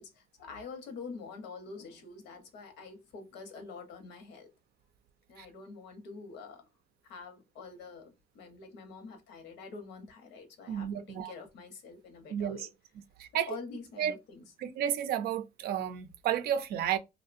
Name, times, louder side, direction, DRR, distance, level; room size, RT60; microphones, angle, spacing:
voice 1, 0.0-4.5 5.3-6.7 7.0-12.7 13.5-14.5, left 4 dB, 85° left, 0.8 m, -46 dB
voice 2, 10.7-11.3 12.3-12.7 13.2-13.5 14.0-14.1 14.6-17.0, right 10 dB, 65° right, 0.4 m, -32 dB
2.6 x 2.1 x 2.5 m
cardioid pair, 110°, 17 cm